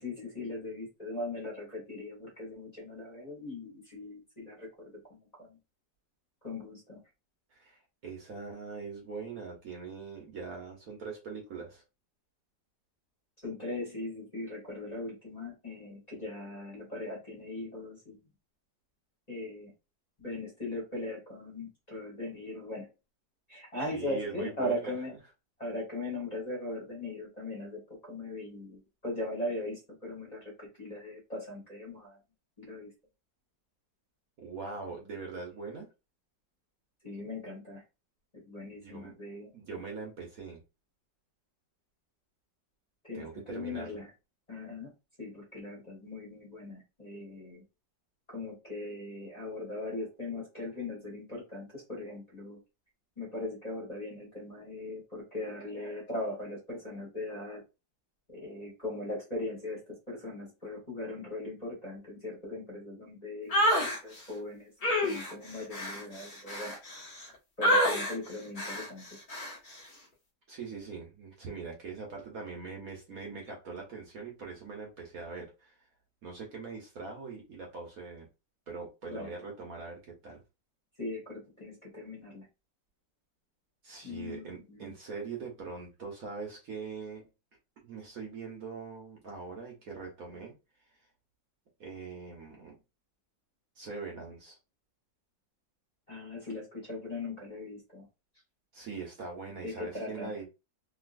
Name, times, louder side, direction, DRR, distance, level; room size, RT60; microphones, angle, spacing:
voice 1, 0.0-5.6 6.4-7.0 13.4-18.2 19.3-19.7 20.2-22.9 23.5-25.1 25.6-27.8 28.1-32.2 32.6-32.9 37.0-37.8 38.3-39.5 43.0-44.1 44.5-44.9 45.2-47.6 48.3-52.6 53.2-57.6 58.3-59.8 60.1-64.7 65.0-66.8 67.6-69.1 79.1-79.3 81.0-82.5 84.0-84.9 96.1-98.1 99.6-100.3, left 2 dB, 25° left, 1.2 m, -39 dB
voice 2, 7.5-11.8 23.9-25.2 34.4-35.9 38.7-39.1 39.5-40.6 43.1-44.0 70.5-75.8 76.2-78.3 78.7-80.4 83.8-87.2 87.8-90.5 91.8-92.8 93.8-94.6 98.7-100.5, right 4 dB, 55° right, 1.2 m, -42 dB
sound 1, 63.5-64.0 64.8-67.3 67.6-68.2 68.6-68.9 69.3-69.6, equal, 40° left, 0.7 m, -28 dB
3.1 x 2.8 x 2.5 m
omnidirectional pair, 2.0 m